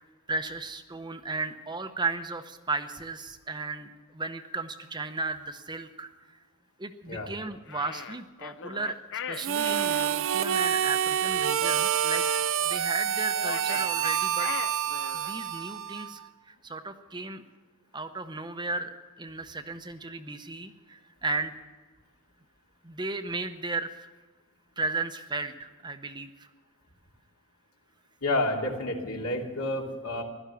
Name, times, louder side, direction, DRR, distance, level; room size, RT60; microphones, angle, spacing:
voice 1, 0.3-6.4 6.8-9.0 9.3-12.3 12.6-14.5 15.1-16.2 16.5-17.4 17.9-21.5 22.8-24.0 24.8-26.5, right 3 dB, 20° right, 8 dB, 0.8 m, -35 dB
sound 1, 7.7-10.1 13.3-15.4, left 8 dB, 55° left, 0.6 m, -39 dB
Harmonica, 9.3-16.3, right 9 dB, 60° right, 0.5 m, -27 dB
voice 2, 28.2-30.2, left 2 dB, 75° left, 1 dB, 2.7 m, -29 dB
16.5 x 12.5 x 6.9 m, 1.3 s
head